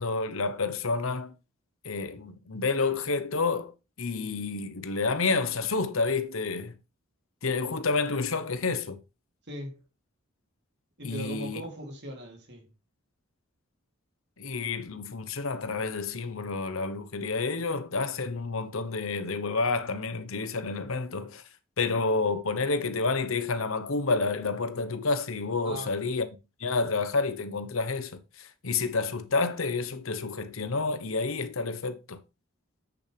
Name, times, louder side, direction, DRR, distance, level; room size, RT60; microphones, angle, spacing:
voice 1, 0.0-1.3 1.8-3.7 4.0-6.7 7.4-9.0 11.0-11.6 14.4-21.4 21.8-26.3 26.6-32.2, left 4 dB, 75° left, 1.1 m, -29 dB
voice 2, 9.5-9.8 11.0-12.7 25.6-26.0, equal, 55° right, 2.9 m, -39 dB
8.1 x 7.0 x 3.4 m
head